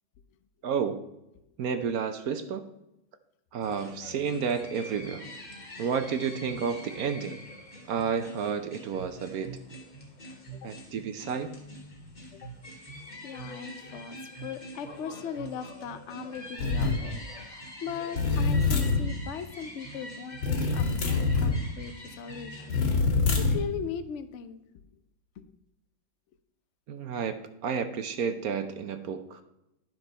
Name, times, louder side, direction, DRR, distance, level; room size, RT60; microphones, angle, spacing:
voice 1, 0.6-1.0 1.6-2.7 3.5-5.3 5.8-7.4 7.9-9.6 10.6-11.5 26.9-29.4, right 6 dB, 65° right, 9 dB, 0.9 m, -31 dB
sound 1, 3.6-22.8, equal, 25° left, 1.7 m, -45 dB
voice 2, 13.2-22.8 23.4-24.6 25.4-25.5, left 7 dB, 70° left, 10 dB, 0.7 m, -39 dB
sound 2, 16.6-17.0 18.2-19.1 20.4-21.6 22.7-23.6, left 4 dB, 85° left, 2.2 m, -25 dB
11.0 x 6.0 x 4.2 m, 0.90 s
omnidirectional pair, 2.1 m